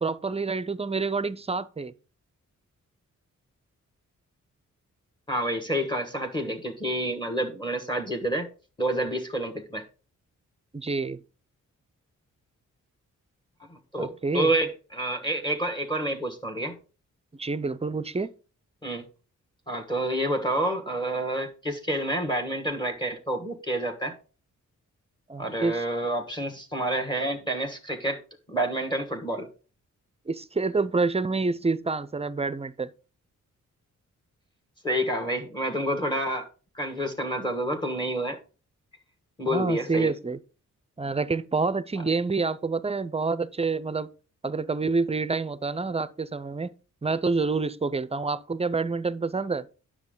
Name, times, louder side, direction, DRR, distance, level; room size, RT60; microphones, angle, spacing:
voice 1, 0.0-1.9 10.7-11.2 14.0-14.5 17.4-18.3 25.3-25.8 30.3-32.9 39.5-40.4 41.0-44.1 44.4-46.7 47.0-49.7, right 4 dB, 20° right, 0.5 m, -27 dB
voice 2, 5.3-8.5 8.8-9.8 13.7-16.8 18.8-19.0 19.7-24.1 25.4-28.2 28.5-29.5 34.8-36.5 36.7-38.4 39.4-40.1, right 1 dB, 15° left, 1.5 m, -28 dB
9.6 x 6.3 x 3.8 m
cardioid pair, 85°, 31 cm